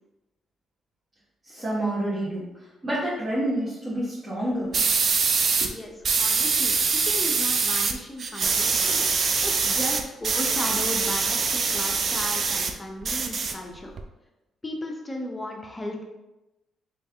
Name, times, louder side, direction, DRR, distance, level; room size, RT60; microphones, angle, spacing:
voice 1, 1.4-2.5 2.8-4.8 5.6-5.7, right 1 dB, 30° right, -8 dB, 1.2 m, -28 dB
sound 1, 4.7-5.7 6.0-7.9 8.2-12.7 13.0-14.0, right 5 dB, 50° right, 0.4 m, -24 dB
voice 2, 5.7-9.1 9.4-13.9 14.6-16.0, left 1 dB, 15° left, 1 dB, 0.7 m, -35 dB
3.4 x 3.1 x 3.4 m, 1.0 s
cardioid pair, 90°, 0 cm